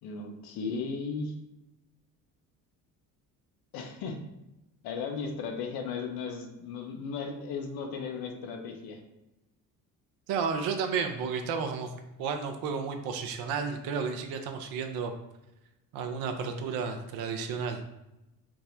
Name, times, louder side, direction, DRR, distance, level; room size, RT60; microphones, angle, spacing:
voice 1, 0.0-1.3 3.7-4.2 4.8-9.0, left 5 dB, 50° left, 4 dB, 0.6 m, -36 dB
voice 2, 10.3-11.9 12.2-15.1 15.9-17.8, right 5 dB, 50° right, 5 dB, 0.5 m, -32 dB
3.4 x 2.0 x 2.5 m, 0.93 s
figure-of-eight pair, 50°, 48 cm